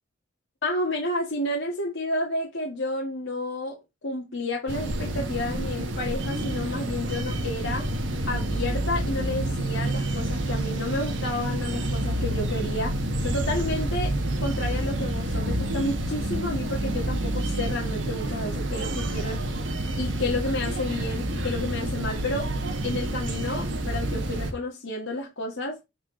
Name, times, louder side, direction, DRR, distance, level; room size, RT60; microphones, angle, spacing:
voice 1, 0.6-7.9 8.3-19.4 20.0-22.5 22.8-25.8, left 2 dB, 70° left, 1.9 m, -31 dB
sound 1, 4.7-24.5, right 1 dB, 60° right, 1.6 m, -28 dB
8.1 x 4.5 x 3.9 m
head